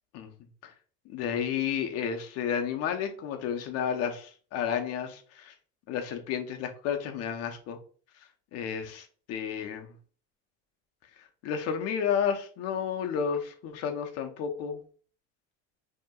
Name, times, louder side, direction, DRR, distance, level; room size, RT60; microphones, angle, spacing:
voice 1, 1.1-5.5 5.9-7.8 8.5-9.9 11.4-14.8, left 7 dB, 55° left, 0.8 m, -31 dB
5.4 x 2.9 x 2.3 m
cardioid pair, 145°, 29 cm